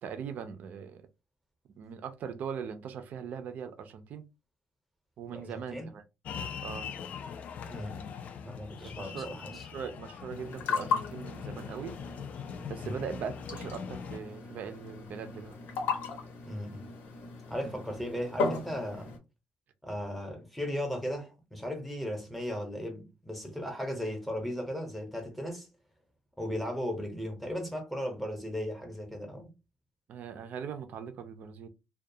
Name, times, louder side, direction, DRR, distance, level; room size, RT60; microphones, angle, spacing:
voice 1, 0.0-1.0 1.8-4.2 5.2-6.0 6.6-6.9 9.0-12.0 12.7-15.5 17.6-17.8 30.1-31.7, right 7 dB, 55° right, 0.5 m, -40 dB
voice 2, 5.3-5.9 7.6-8.1 8.4-9.6 12.8-13.0 16.4-16.8 17.5-19.2 19.8-25.7 26.4-29.5, equal, ahead, 0.7 m, -36 dB
sound 1, 6.2-14.2, left 7 dB, 50° left, 0.3 m, -42 dB
sound 2, 10.3-19.2, left 4 dB, 75° left, 0.8 m, -36 dB
2.3 x 2.2 x 2.6 m
cardioid pair, 140°, 3 cm